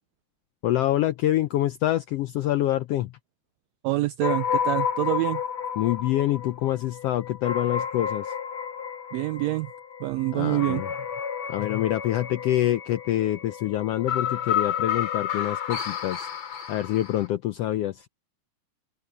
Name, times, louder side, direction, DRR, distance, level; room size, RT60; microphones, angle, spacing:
voice 1, 0.6-3.1 5.8-8.3 10.3-10.9 11.5-16.3 16.7-18.1, left 13 dB, 85° left, 1.3 m, -26 dB
voice 2, 3.8-5.4 9.1-9.7 10.0-10.8, right 18 dB, 80° right, 1.5 m, -26 dB
sound 1, 4.2-17.3, left 8 dB, 45° left, 3.6 m, -31 dB
open air
omnidirectional pair, 3.5 m